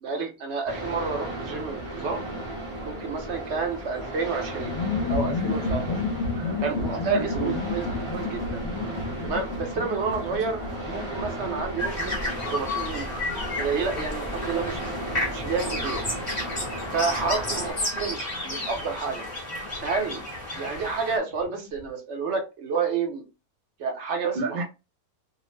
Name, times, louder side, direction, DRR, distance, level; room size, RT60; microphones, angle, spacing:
voice 1, 0.0-2.2 2.8-4.7 5.1-6.0 6.6-8.6 9.2-10.6 10.9-12.1 12.4-13.1 13.6-14.8 15.3-16.0 16.9-19.2 19.8-20.2 20.6-23.2 23.8-24.6, right 5 dB, 55° right, 0.8 m, -29 dB
sound 1, 0.7-17.7, right 1 dB, 30° right, 0.6 m, -35 dB
sound 2, 4.6-20.9 21.1-21.2 21.4-21.9, left 4 dB, 70° left, 0.7 m, -34 dB
voice 2, 6.3-6.8 7.1-7.6 24.3-24.6, right 3 dB, 85° right, 0.4 m, -30 dB
sound 3, 11.8-21.2, left 2 dB, 35° left, 0.8 m, -32 dB
2.7 x 2.0 x 3.1 m
omnidirectional pair, 1.6 m